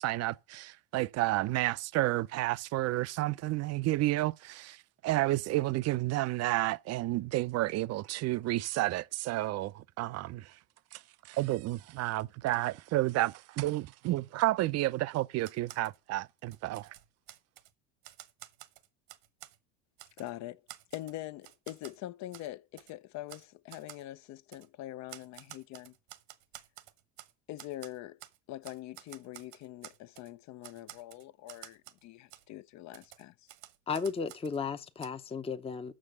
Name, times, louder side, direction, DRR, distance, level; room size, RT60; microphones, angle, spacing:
voice 1, 0.0-10.5 10.9-11.0 11.3-16.9, right 17 dB, 50° right, 0.5 m, -31 dB
Typewriter, 15.4-16.0 16.4-17.7 18.0-19.6 20.0-20.3 20.7-22.0 22.3-22.5 22.8-22.9 23.3-23.4 23.7-24.0 24.5-24.7 25.1-27.3 27.6-28.4 28.6-30.3 30.6-32.0 32.3-32.4 32.9-34.6 35.0-35.1, right 15 dB, 75° right, 1.1 m, -51 dB
voice 2, 20.2-20.6 20.9-25.9 27.5-28.2 28.5-33.5, left 14 dB, 55° left, 0.6 m, -44 dB
voice 3, 33.9-35.9, left 5 dB, 15° left, 0.7 m, -34 dB
7.6 x 6.0 x 6.4 m
supercardioid pair, 90°, 34 cm